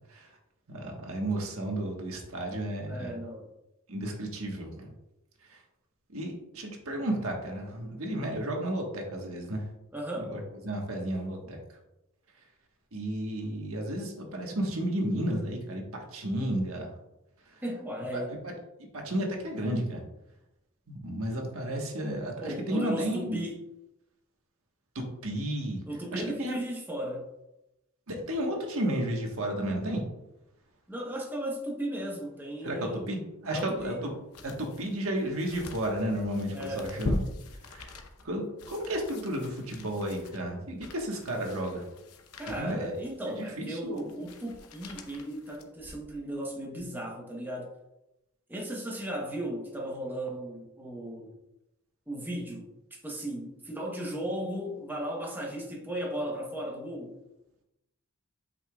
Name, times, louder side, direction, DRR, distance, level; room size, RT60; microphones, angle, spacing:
voice 1, 0.7-3.2 3.9-4.9 5.5-5.6 6.1-9.7 10.3-11.6 12.9-16.9 17.5-17.6 18.1-18.5 18.9-20.0 20.9-23.4 24.9-25.8 26.1-26.6 28.1-30.0 32.6-34.1 34.4-37.2 37.7-37.9 38.2-41.9 42.6-43.0 43.4-44.2, right 1 dB, 75° right, 1.3 m, -33 dB
voice 2, 2.9-3.5 9.9-10.3 17.6-18.4 22.4-23.5 25.9-27.3 30.9-33.1 33.5-34.0 36.5-36.9 42.4-47.7 48.5-51.3 52.1-57.2, right 1 dB, 10° right, 0.9 m, -36 dB
sound 1, 33.6-46.2 46.7-46.8, left 2 dB, 90° left, 0.8 m, -41 dB
8.0 x 5.6 x 2.3 m
head